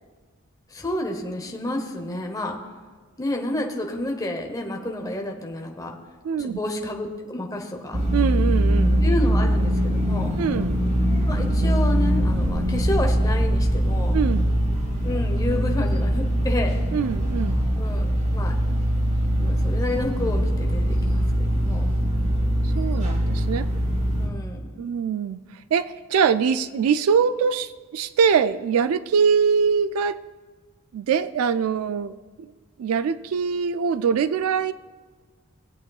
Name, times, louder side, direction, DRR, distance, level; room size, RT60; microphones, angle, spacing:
voice 1, 0.7-2.6 3.2-6.0 6.3-8.0 9.0-10.3 11.3-14.2 15.0-16.8 17.8-18.5 19.3-21.9 24.2-25.0, left 1 dB, 15° left, 2 dB, 1.0 m, -30 dB
voice 2, 6.2-6.6 8.1-9.0 10.4-10.9 14.1-14.5 16.9-17.7 22.6-23.7 24.8-25.4 25.7-30.2 30.9-32.5 32.8-34.7, right 6 dB, 85° right, 14 dB, 0.3 m, -23 dB
sound 1, 7.9-24.3, equal, 35° right, 1.6 m, -22 dB
18.5 x 8.2 x 2.4 m, 1.5 s
head